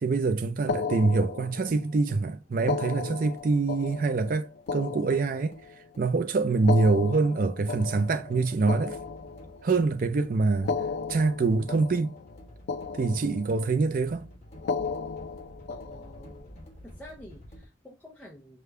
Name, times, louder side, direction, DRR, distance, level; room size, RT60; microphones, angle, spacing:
voice 1, 0.0-5.6 6.0-9.0 9.6-10.7 11.1-12.2 13.0-14.3, right 3 dB, 50° right, 0.4 m, -25 dB
sound 1, 0.7-1.9 2.6-5.9 6.5-9.8 10.5-12.4 12.7-13.7 14.6-16.4, left 5 dB, 65° left, 0.4 m, -35 dB
sound 2, 1.6-17.7, equal, 40° left, 1.6 m, -51 dB
voice 2, 15.7-16.6 16.8-18.6, left 1 dB, 10° left, 0.5 m, -49 dB
5.1 x 2.2 x 3.2 m
head